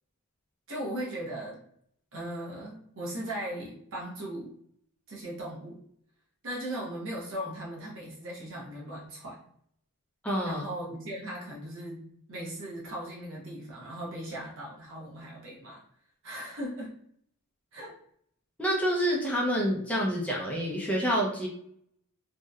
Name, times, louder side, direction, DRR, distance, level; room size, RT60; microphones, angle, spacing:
voice 1, 0.7-1.6 2.1-4.5 5.1-5.8 6.4-9.4 10.4-15.8 16.2-16.9 17.7-18.0, right 1 dB, 60° right, -4 dB, 0.7 m, -38 dB
voice 2, 10.2-10.6 18.6-21.5, equal, 5° left, -3 dB, 0.5 m, -27 dB
2.7 x 2.1 x 2.3 m, 0.67 s
head